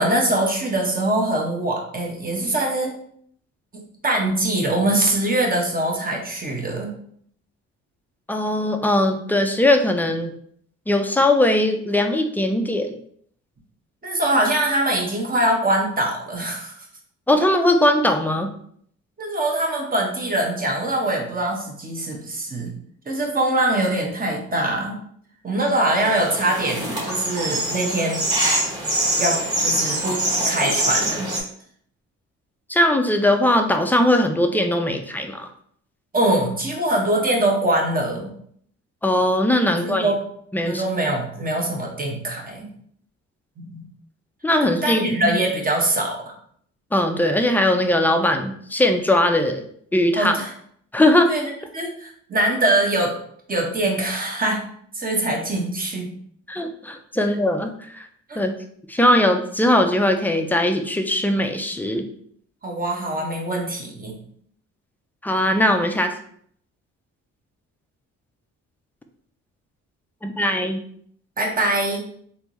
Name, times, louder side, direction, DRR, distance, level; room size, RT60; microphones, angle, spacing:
voice 1, 0.0-2.9 4.0-6.9 14.0-16.7 19.2-22.7 23.1-25.0 25.4-28.2 29.2-31.3 36.1-38.3 39.8-40.2 40.6-42.7 43.6-43.8 44.8-46.3 50.1-50.5 51.3-53.2 53.5-54.6 54.9-56.1 58.3-58.4 62.6-64.2 71.4-72.0, right 1 dB, 30° right, 0 dB, 1.0 m, -23 dB
voice 2, 8.3-10.3 10.9-12.9 17.3-18.5 32.7-35.5 39.0-40.1 40.5-40.8 44.4-45.3 46.9-49.6 49.9-50.4 50.9-51.3 56.5-58.1 58.4-58.5 58.9-62.0 65.2-66.1 70.2-70.8, left 1 dB, 5° left, 6 dB, 0.4 m, -20 dB
sound 1, 25.9-31.4, right 1 dB, 15° right, 1.4 m, -24 dB
3.4 x 2.6 x 3.0 m, 0.63 s
cardioid pair, 90°, 30 cm